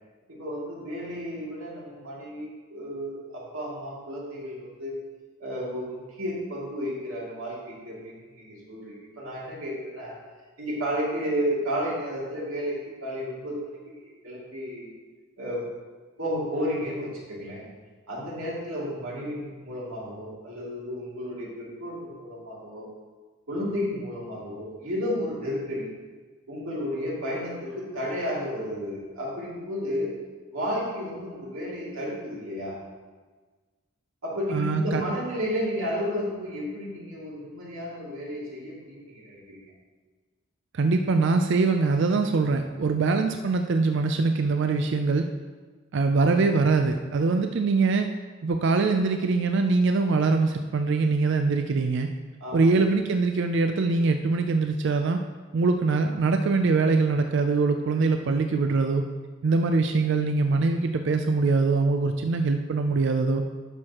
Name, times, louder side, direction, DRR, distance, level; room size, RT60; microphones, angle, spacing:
voice 1, 0.3-5.0 5.4-10.1 10.6-14.9 15.4-15.6 16.2-17.7 18.1-22.8 23.5-25.9 26.5-30.1 30.5-32.8 34.2-39.7 52.4-52.8, equal, 70° right, -6 dB, 2.5 m, -32 dB
voice 2, 34.5-35.0 40.7-45.3 45.9-48.1 48.4-52.1 52.5-55.2 55.5-59.0 59.4-63.4, right 3 dB, 55° right, 6 dB, 0.4 m, -23 dB
11.0 x 6.3 x 2.9 m, 1.4 s
head